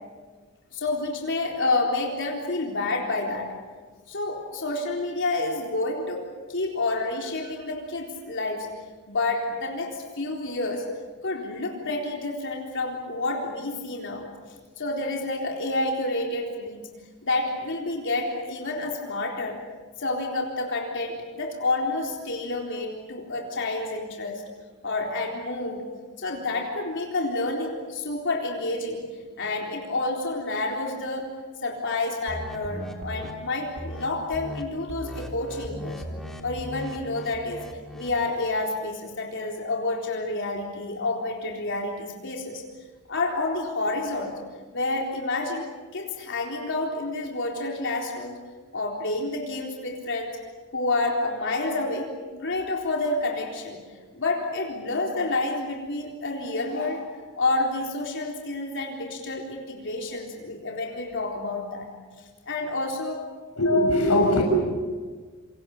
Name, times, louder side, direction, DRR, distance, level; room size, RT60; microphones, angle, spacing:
voice 1, 0.7-3.5 4.1-8.7 9.1-10.8 11.2-14.2 14.8-16.8 17.2-19.6 20.0-24.4 24.8-25.8 26.2-29.0 29.4-31.3 31.6-36.0 36.4-37.6 37.9-42.6 43.1-44.3 44.7-48.4 48.7-50.4 50.7-53.8 54.1-61.9 62.5-63.2, left 2 dB, 55° left, 0 dB, 3.9 m, -29 dB
sound 1, 32.3-33.3 33.8-34.1 34.3-34.6 34.9-38.2, equal, ahead, 3.0 m, -37 dB
voice 2, 63.5-64.4, left 1 dB, 85° left, 1 dB, 6.7 m, -20 dB
28.5 x 26.5 x 7.3 m, 1.5 s
head